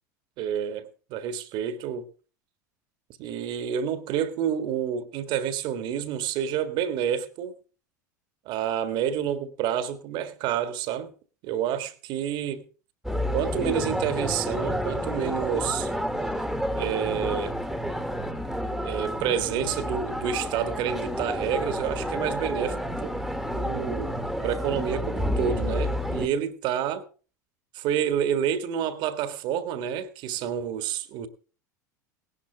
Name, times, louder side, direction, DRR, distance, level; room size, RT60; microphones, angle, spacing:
voice 1, 0.4-2.0 3.2-7.5 8.4-11.1 11.4-12.6 13.3-15.9 16.8-17.6 18.8-23.2 23.5-27.0 27.7-31.3, right 9 dB, 55° right, 1.7 m, -29 dB
sound 1, 13.0-26.3, equal, ahead, 1.8 m, -30 dB
17.5 x 11.5 x 3.4 m
hypercardioid pair, 85°, 10 cm